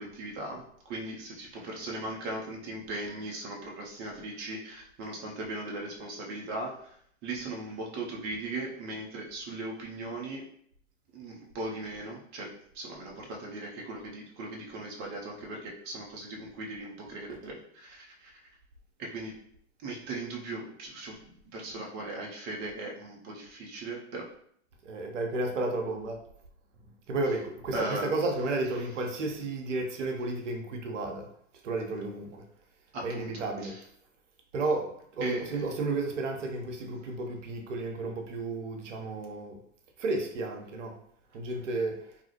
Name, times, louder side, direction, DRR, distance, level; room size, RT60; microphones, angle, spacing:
voice 1, 0.0-6.9 7.2-10.4 11.1-18.3 19.0-19.4 19.8-21.2 21.5-24.3 27.7-28.1 32.9-33.7 35.2-35.7, right 2 dB, 25° right, -1 dB, 0.5 m, -38 dB
voice 2, 24.8-26.2 27.1-31.3 31.6-32.4 33.0-33.8 34.5-39.6 40.0-41.0 41.3-42.1, right 2 dB, 70° right, 3 dB, 0.6 m, -32 dB
2.4 x 2.0 x 2.9 m, 0.65 s
figure-of-eight pair, 95°, 38 cm